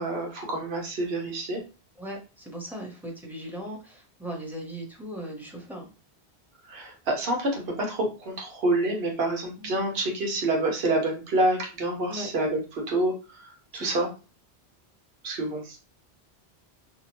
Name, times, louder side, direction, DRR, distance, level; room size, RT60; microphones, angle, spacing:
voice 1, 0.0-1.6 6.7-14.1 15.2-15.8, right 2 dB, 65° right, 0 dB, 1.1 m, -27 dB
voice 2, 2.0-5.9 9.6-9.8 12.1-12.3 13.7-14.1, right 1 dB, ahead, -2 dB, 0.6 m, -38 dB
2.8 x 2.1 x 2.9 m, 0.32 s
omnidirectional pair, 1.1 m